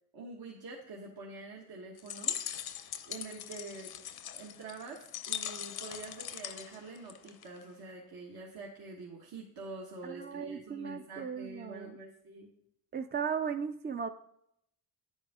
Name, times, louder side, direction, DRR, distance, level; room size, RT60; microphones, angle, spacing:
voice 1, 0.1-2.4 3.1-3.9 4.3-12.5, right 3 dB, 70° right, -2 dB, 1.4 m, -46 dB
sound 1, 2.0-7.6, left 9 dB, 75° left, 0.8 m, -40 dB
voice 2, 10.0-12.0 12.9-14.1, right 7 dB, 30° right, 8 dB, 0.4 m, -36 dB
10.0 x 8.1 x 3.6 m, 0.75 s
cardioid pair, 105°, 38 cm